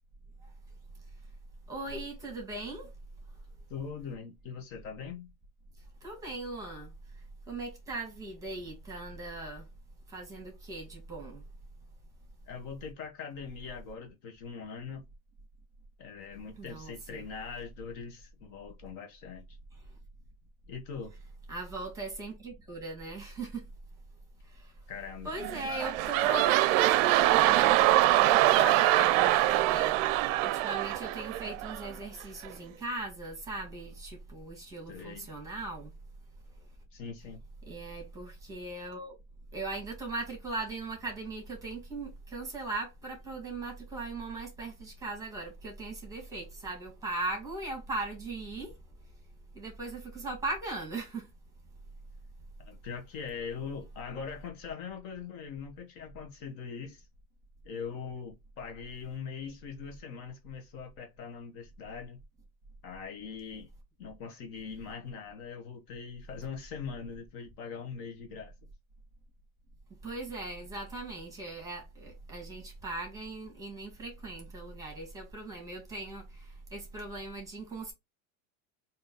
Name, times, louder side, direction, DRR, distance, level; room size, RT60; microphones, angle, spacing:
voice 1, 1.7-2.9 6.0-6.9 7.5-9.6 10.1-11.4 16.6-17.2 21.5-23.7 24.5-24.7 25.2-27.8 28.1-35.9 37.7-39.1 39.5-48.8 49.5-51.3 70.0-77.9, right 2 dB, 10° right, 1.6 m, -39 dB
voice 2, 3.7-5.3 12.5-15.0 16.0-19.6 20.7-21.1 24.9-25.3 34.9-35.3 36.9-37.4 52.6-57.1 57.6-62.2 62.8-63.7 64.0-68.5, left 6 dB, 50° left, 1.0 m, -41 dB
sound 1, 25.4-31.9 32.4-32.5, right 15 dB, 65° right, 0.5 m, -24 dB
3.6 x 2.7 x 3.9 m
supercardioid pair, 140°, 43 cm